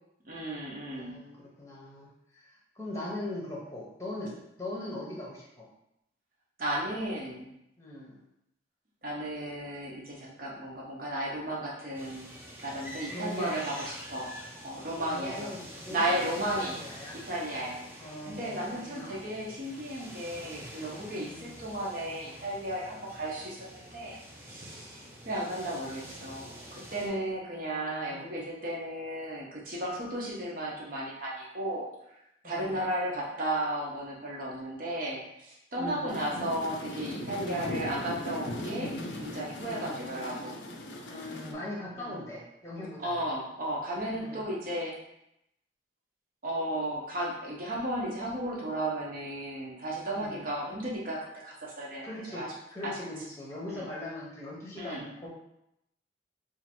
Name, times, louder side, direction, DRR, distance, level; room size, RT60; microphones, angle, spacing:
voice 1, 0.2-1.2 6.6-7.5 9.0-12.3 12.6-14.3 14.6-15.5 15.9-16.8 17.1-17.8 18.2-24.2 24.4-31.9 32.4-38.9 39.2-40.6 42.0-42.1 43.0-44.9 46.4-52.5 52.8-53.0 53.7-53.9 54.7-55.0, right 1 dB, 50° right, -4 dB, 0.9 m, -34 dB
voice 2, 0.9-5.7 7.8-8.2 13.1-13.6 15.1-17.2 18.0-19.2 21.2-21.5 28.1-28.3 32.4-32.8 35.8-36.1 37.4-37.7 39.7-40.0 41.1-43.2 44.1-44.4 50.1-50.4 52.0-52.4 52.7-55.3, left 1 dB, 15° left, -4 dB, 0.8 m, -40 dB
sound 1, 11.9-27.1, equal, 10° right, 0.5 m, -47 dB
sound 2, 36.1-41.5, left 1 dB, 75° left, 0.5 m, -38 dB
2.9 x 2.5 x 4.3 m, 0.82 s
head